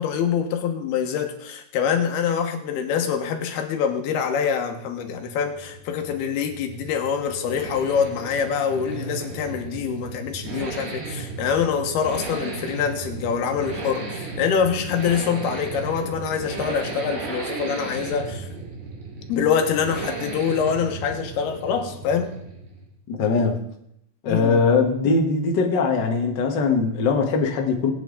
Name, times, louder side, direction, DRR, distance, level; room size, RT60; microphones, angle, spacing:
voice 1, 0.0-18.5 19.3-22.4 24.3-24.6, left 7 dB, 85° left, 5 dB, 3.3 m, -25 dB
sound 1, 4.9-23.0, right 3 dB, 80° right, 4.3 m, -35 dB
voice 2, 23.1-23.6 24.2-27.9, left 4 dB, 65° left, 2 dB, 1.0 m, -21 dB
20.5 x 8.7 x 3.9 m, 0.78 s
omnidirectional pair, 4.4 m